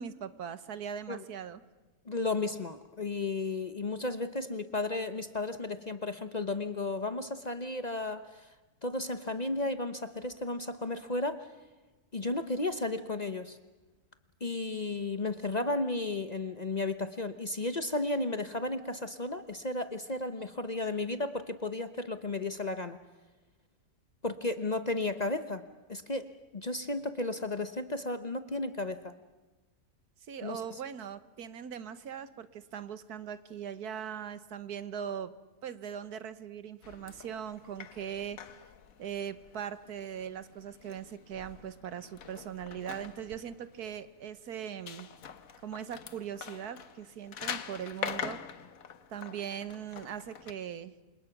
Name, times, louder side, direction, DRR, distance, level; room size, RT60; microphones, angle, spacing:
voice 1, 0.0-1.6 30.3-35.3 35.6-38.4 39.0-45.1 45.6-48.4 49.1-50.9, right 8 dB, 80° right, 13 dB, 1.6 m, -40 dB
voice 2, 2.1-8.5 8.8-11.5 12.1-13.6 14.4-23.0 24.2-25.6 25.9-29.1 30.4-30.8, left 2 dB, 30° left, 10 dB, 0.9 m, -34 dB
sound 1, 36.8-50.5, left 7 dB, 65° left, 1.5 m, -44 dB
28.5 x 26.5 x 6.0 m, 1.2 s
omnidirectional pair, 1.6 m